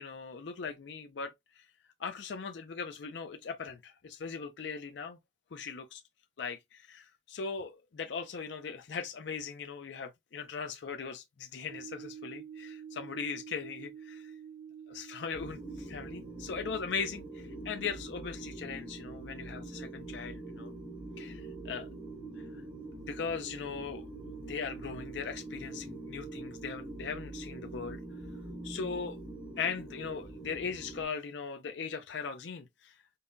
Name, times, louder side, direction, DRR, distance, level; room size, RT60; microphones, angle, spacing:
voice 1, 0.0-1.6 2.0-5.2 5.5-6.0 6.4-14.3 14.9-20.7 21.2-21.9 22.9-24.1 24.4-28.0 28.6-29.2 29.6-32.9, left 5 dB, 70° left, 0.4 m, -39 dB
sound 1, 11.7-29.1, right 8 dB, 65° right, 0.4 m, -51 dB
sound 2, 15.3-31.0, right 2 dB, 25° right, 0.7 m, -44 dB
5.3 x 2.2 x 2.6 m
head